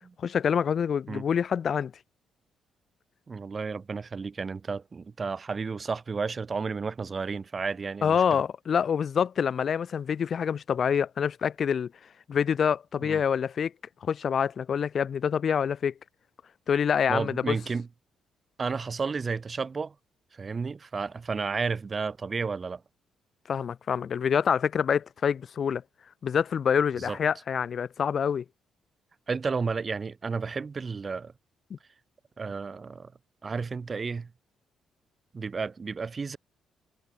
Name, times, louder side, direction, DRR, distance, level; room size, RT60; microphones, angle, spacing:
voice 1, 0.2-1.9 8.0-11.9 12.3-13.7 14.0-15.9 16.7-17.6 23.5-25.8 26.2-28.4 31.7-31.8, left 7 dB, 50° left, 2.7 m, -26 dB
voice 2, 3.3-8.4 13.0-13.2 17.1-17.9 18.6-19.9 20.3-22.8 27.0-27.2 29.3-31.3 32.4-33.1 33.4-34.3 35.3-36.4, right 4 dB, 35° right, 6.7 m, -32 dB
cardioid pair, 90°, 0 cm